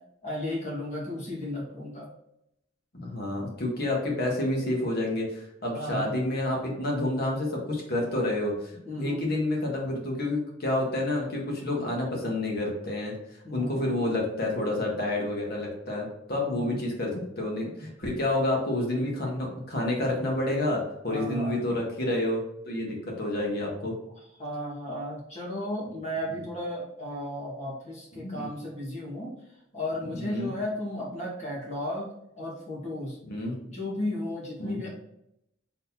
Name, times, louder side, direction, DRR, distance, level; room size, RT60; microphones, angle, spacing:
voice 1, 0.2-2.1 5.7-6.2 8.8-9.2 13.4-14.0 16.4-16.9 21.1-21.6 24.4-29.3 29.7-32.1 32.4-33.2 33.7-34.9, left 1 dB, 35° left, -4 dB, 1.7 m, -34 dB
voice 2, 2.9-13.1 13.5-23.9 25.9-26.0 28.1-28.5 30.1-30.5 33.2-33.5 34.6-34.8, left 1 dB, 50° left, -1 dB, 1.4 m, -29 dB
4.0 x 3.9 x 2.8 m, 0.80 s
head